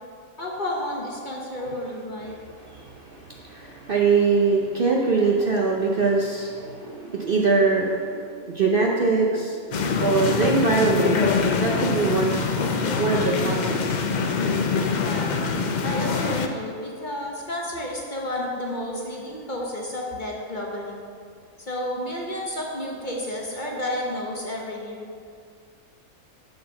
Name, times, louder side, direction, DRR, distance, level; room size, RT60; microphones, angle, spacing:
voice 1, 0.4-2.4 15.0-15.3 15.8-21.0 21.6-25.1, left 1 dB, 35° left, -2 dB, 1.0 m, -31 dB
voice 2, 2.6-12.5 13.0-14.0, right 4 dB, 50° right, -1 dB, 0.7 m, -23 dB
sound 1, 9.7-16.5, left 5 dB, 85° left, 0.4 m, -24 dB
7.8 x 4.5 x 6.7 m, 2.2 s
omnidirectional pair, 1.5 m